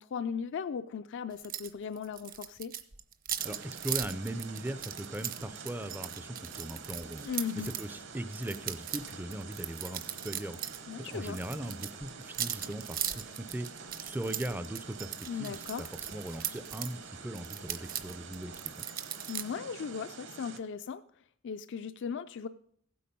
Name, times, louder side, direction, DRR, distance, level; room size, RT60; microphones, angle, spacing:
voice 1, 0.0-2.7 7.2-7.7 10.9-11.4 15.2-15.9 19.3-21.0 21.4-22.5, left 6 dB, 55° left, 11 dB, 0.4 m, -37 dB
sound 1, 1.4-1.7 2.0-7.9 8.3-10.8 11.0-16.9 17.3-19.4, right 10 dB, 40° right, 0.8 m, -38 dB
voice 2, 3.4-7.3 7.6-18.8, right 1 dB, 10° right, 13 dB, 0.4 m, -39 dB
sound 2, 3.4-20.6, right 5 dB, 60° right, 1.3 m, -47 dB
15.5 x 8.5 x 5.3 m, 0.64 s
head